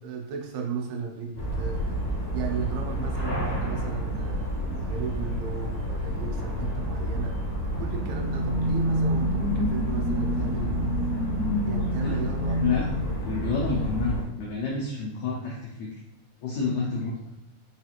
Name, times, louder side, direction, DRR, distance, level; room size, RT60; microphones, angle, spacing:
voice 1, 0.0-2.0 2.3-7.4 7.8-10.8 11.6-12.6, right 5 dB, 90° right, 1 dB, 2.6 m, -35 dB
sound 1, 1.3-14.2, equal, 50° left, 1.4 m, -30 dB
sound 2, 7.6-13.9, equal, 55° right, 1.8 m, -29 dB
voice 2, 11.8-12.2 12.5-12.9 13.2-15.9 16.4-17.3, left 4 dB, 90° left, -4 dB, 1.6 m, -29 dB
5.7 x 2.9 x 2.4 m, 0.83 s
omnidirectional pair, 4.2 m